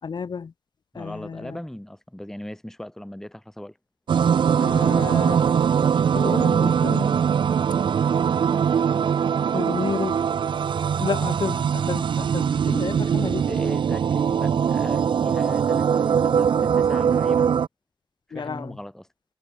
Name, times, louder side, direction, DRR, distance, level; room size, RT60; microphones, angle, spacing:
voice 1, 0.0-0.5 0.9-1.6 4.6-5.8 6.1-7.2 9.5-10.3 11.0-13.5 18.3-18.8, left 6 dB, 55° left, 3.3 m, -31 dB
voice 2, 0.9-3.8 13.1-17.5 18.3-19.1, left 1 dB, 5° left, 2.4 m, -38 dB
sound 1, 4.1-17.7, right 7 dB, 60° right, 0.5 m, -21 dB
wide cardioid pair, 160°, 9 cm